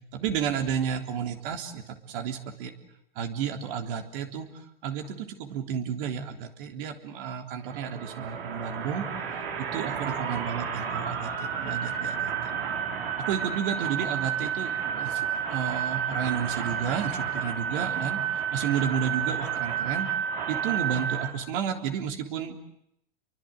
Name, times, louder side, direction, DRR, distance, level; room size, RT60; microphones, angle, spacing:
voice 1, 0.1-1.8 2.1-2.7 3.2-4.5 4.8-9.1 9.6-12.3 13.3-18.2 18.5-20.1 20.5-22.6, right 8 dB, 65° right, 5 dB, 3.6 m, -32 dB
sound 1, 7.6-21.3, right 8 dB, 80° right, 4.6 m, -31 dB
29.5 x 23.5 x 7.8 m, 0.78 s
hypercardioid pair, 105°, 29 cm